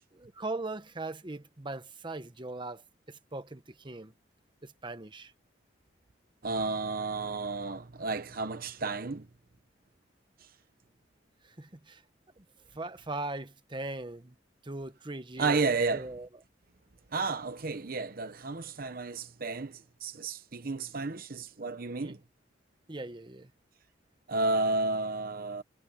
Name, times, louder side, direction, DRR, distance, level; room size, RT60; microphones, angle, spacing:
voice 1, 0.2-4.1 4.6-5.3 11.4-12.0 12.4-12.5 12.7-14.3 14.6-16.3 22.0-22.2 22.9-23.5, right 2 dB, 25° right, 1.1 m, -40 dB
voice 2, 6.4-9.3 10.4-10.5 15.4-16.1 17.1-22.2 24.3-25.6, right 3 dB, 50° right, 0.9 m, -32 dB
head